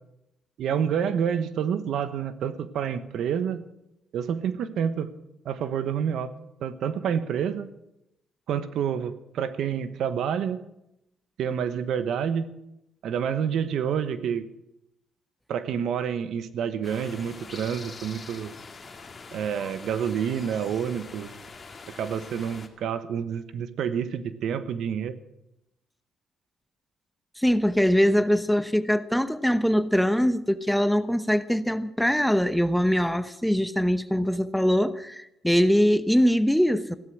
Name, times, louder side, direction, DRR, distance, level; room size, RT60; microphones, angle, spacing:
voice 1, 0.6-3.6 4.1-5.1 5.4-6.3 6.6-7.7 8.5-10.6 11.4-12.5 13.0-14.5 15.5-18.5 19.3-21.3 22.0-25.1, right 8 dB, 75° right, 1.1 m, -28 dB
sound 1, 16.8-22.7, left 4 dB, 35° left, 2.0 m, -44 dB
voice 2, 27.4-37.0, equal, ahead, 0.9 m, -22 dB
15.5 x 12.5 x 6.4 m
cardioid pair, 90°, 0 cm